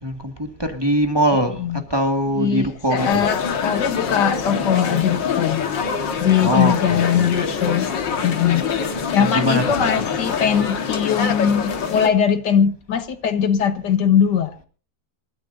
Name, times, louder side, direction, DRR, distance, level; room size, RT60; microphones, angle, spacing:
voice 1, 0.0-1.6 1.9-3.3 6.4-7.2 9.2-9.9, equal, 15° right, 1.8 m, -22 dB
voice 2, 2.4-5.6 6.2-7.9 8.2-8.7 9.1-14.6, left 8 dB, 70° left, 1.7 m, -20 dB
sound 1, 3.0-12.1, left 5 dB, 90° left, 2.3 m, -25 dB
27.5 x 13.5 x 2.6 m
omnidirectional pair, 1.9 m